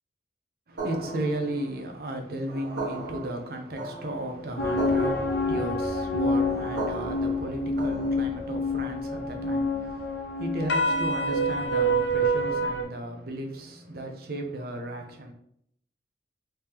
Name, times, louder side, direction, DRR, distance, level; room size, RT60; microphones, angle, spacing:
voice 1, 0.7-15.3, right 1 dB, 55° right, 0.6 m, -35 dB
sound 1, 0.8-8.6, right 3 dB, 80° right, 1.3 m, -38 dB
sound 2, 4.6-12.8, equal, 75° left, 0.7 m, -27 dB
3.3 x 2.8 x 3.4 m
head